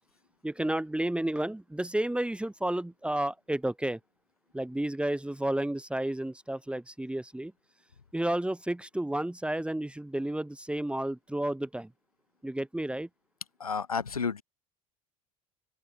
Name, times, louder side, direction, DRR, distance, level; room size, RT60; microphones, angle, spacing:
voice 1, 0.4-4.0 4.5-7.5 8.1-11.9 12.4-13.1, right 1 dB, 5° right, 2.2 m, -31 dB
voice 2, 13.6-14.4, left 5 dB, 90° left, 2.7 m, -31 dB
open air
figure-of-eight pair, 65°, 18 cm